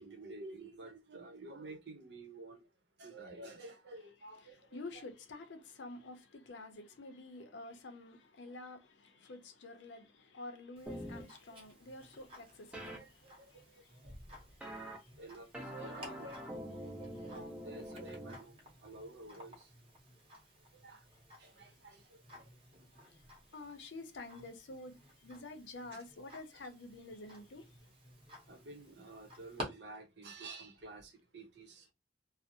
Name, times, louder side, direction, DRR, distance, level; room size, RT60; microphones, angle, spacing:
voice 1, 0.0-2.6 3.0-5.0 8.5-8.6 10.9-11.3 12.8-13.5 14.0-14.1 15.2-19.7 20.8-21.0 21.4-22.0 25.9-26.0 28.5-31.9, right 2 dB, 70° right, 0.7 m, -51 dB
voice 2, 4.4-13.8 14.6-15.1 23.5-27.7, left 2 dB, 80° left, 0.6 m, -49 dB
Tick-tock, 10.8-29.6, equal, 30° right, 0.8 m, -54 dB
sound 1, 10.9-11.2 12.7-13.0 14.6-15.0 15.5-18.4, equal, 5° right, 0.5 m, -45 dB
2.5 x 2.0 x 2.6 m
head